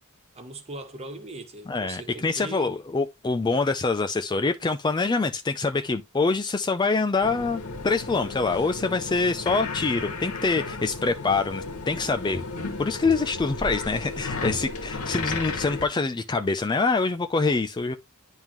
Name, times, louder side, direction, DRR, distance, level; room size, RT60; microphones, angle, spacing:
voice 1, 0.3-2.8, right 2 dB, 30° right, 1.4 m, -39 dB
voice 2, 1.7-12.4 12.8-18.0, left 3 dB, 20° left, 0.4 m, -25 dB
sound 1, 7.2-15.9, left 3 dB, 85° left, 1.8 m, -34 dB
10.5 x 3.6 x 3.0 m
head